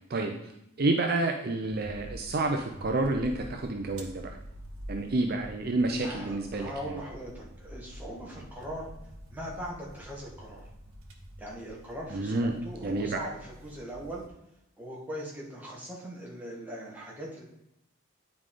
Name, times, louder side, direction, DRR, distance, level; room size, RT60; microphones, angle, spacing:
voice 1, 0.1-0.5 0.8-4.4 4.9-6.9 12.1-12.5 12.8-13.3, right 2 dB, 45° right, 3 dB, 0.5 m, -29 dB
sound 1, 1.7-14.3, equal, 80° right, 1.1 m, -47 dB
voice 2, 6.0-8.9 9.3-10.6 11.4-14.2 14.8-17.4, equal, 10° right, -4 dB, 1.7 m, -40 dB
9.5 x 4.8 x 3.8 m, 0.82 s
head